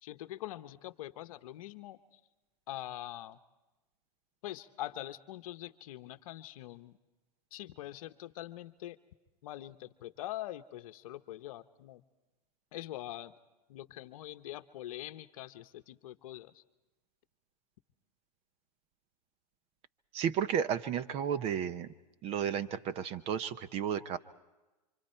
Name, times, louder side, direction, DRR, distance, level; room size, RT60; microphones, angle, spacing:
voice 1, 0.0-2.2 2.7-3.4 4.4-7.0 7.5-9.0 9.4-12.0 12.7-13.3 13.7-16.6, left 14 dB, 55° left, 11 dB, 1.0 m, -44 dB
voice 2, 20.1-21.9 22.2-24.2, right 8 dB, 30° right, 13 dB, 0.7 m, -33 dB
28.5 x 25.5 x 4.5 m, 1.1 s
hypercardioid pair, 130°, 21 cm